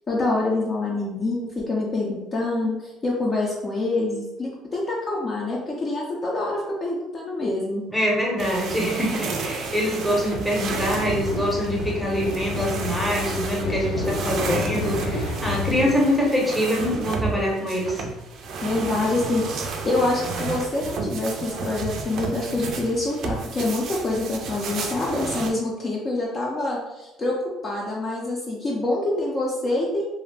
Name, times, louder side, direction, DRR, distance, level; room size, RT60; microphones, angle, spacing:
voice 1, 0.1-7.9 18.6-30.1, left 2 dB, 30° left, -3 dB, 0.4 m, -26 dB
voice 2, 7.9-18.1, equal, ahead, -3 dB, 0.7 m, -24 dB
sound 1, 8.4-25.5, right 4 dB, 55° right, 0.4 m, -32 dB
sound 2, 10.7-15.9, left 3 dB, 75° left, 0.6 m, -29 dB
2.4 x 2.0 x 3.2 m, 1.0 s
cardioid pair, 110°, 0 cm